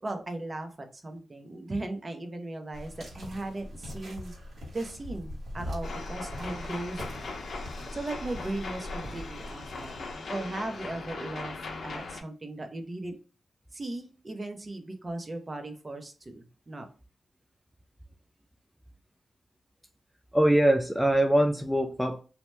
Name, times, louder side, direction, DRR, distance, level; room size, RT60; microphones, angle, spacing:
voice 1, 0.0-4.3 4.7-7.3 7.9-11.5 11.8-13.1 13.7-16.9, right 2 dB, 35° right, 5 dB, 0.7 m, -37 dB
sound 1, 2.7-10.1, equal, 60° right, 1.4 m, -41 dB
sound 2, 5.8-12.2, left 3 dB, 65° left, 0.6 m, -39 dB
voice 2, 20.3-22.2, right 1 dB, ahead, 5 dB, 0.3 m, -23 dB
2.8 x 2.1 x 3.2 m, 0.36 s
cardioid pair, 65°, 0 cm